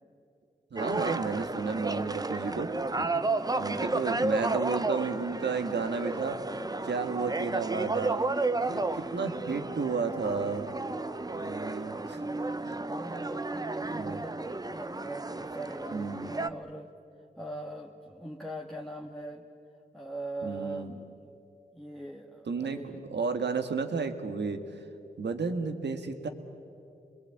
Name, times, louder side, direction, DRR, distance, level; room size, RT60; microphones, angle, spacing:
voice 1, 0.7-3.2 3.6-6.4 6.8-8.2 8.6-10.7 11.3-12.2 12.6-12.8 13.9-14.2 15.9-16.3 20.4-20.9 22.5-24.6 25.2-26.3, right 4 dB, 80° right, 7 dB, 1.8 m, -32 dB
sound 1, 0.8-16.5, right 2 dB, 20° right, 0.8 m, -32 dB
voice 2, 3.1-4.4 8.5-9.8 10.7-16.9 17.4-19.5 19.9-21.4 21.7-22.9, right 1 dB, ahead, -1 dB, 1.8 m, -43 dB
27.0 x 22.0 x 8.5 m, 2.7 s
cardioid pair, 50°, 18 cm